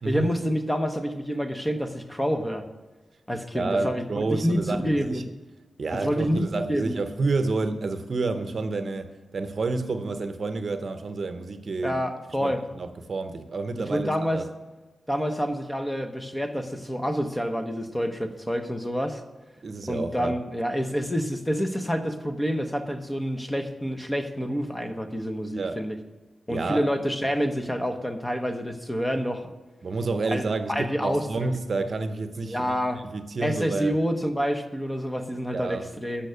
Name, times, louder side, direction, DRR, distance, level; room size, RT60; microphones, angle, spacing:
voice 1, 0.0-2.7 3.3-5.2 5.9-6.9 11.8-12.6 13.9-14.4 15.1-19.2 19.9-26.0 26.5-29.5 30.3-30.4 30.7-31.5 32.5-33.0 33.4-36.3, equal, 10° left, 6 dB, 0.8 m, -28 dB
voice 2, 3.5-5.2 5.8-12.0 12.4-14.1 14.3-14.4 19.6-20.4 25.6-25.8 26.5-26.9 29.8-32.7 33.1-33.9 35.5-35.9, right 3 dB, 50° right, 9 dB, 0.7 m, -29 dB
13.0 x 5.7 x 6.8 m, 1.1 s
wide cardioid pair, 150°, 0 cm